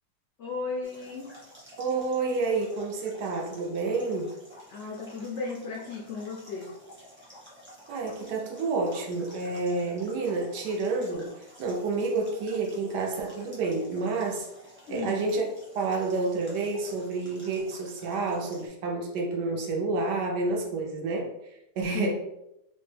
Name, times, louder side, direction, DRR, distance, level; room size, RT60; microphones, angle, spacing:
voice 1, 0.4-1.3 4.7-6.7 14.9-15.3 21.9-22.1, left 4 dB, 80° left, -2 dB, 0.6 m, -35 dB
sound 1, 0.8-18.7, equal, 10° right, 0.6 m, -51 dB
voice 2, 1.8-4.3 7.9-14.5 14.9-15.5 15.7-21.3 21.8-22.1, right 3 dB, 80° right, 0 dB, 1.3 m, -29 dB
3.5 x 2.1 x 3.2 m, 0.87 s
omnidirectional pair, 1.8 m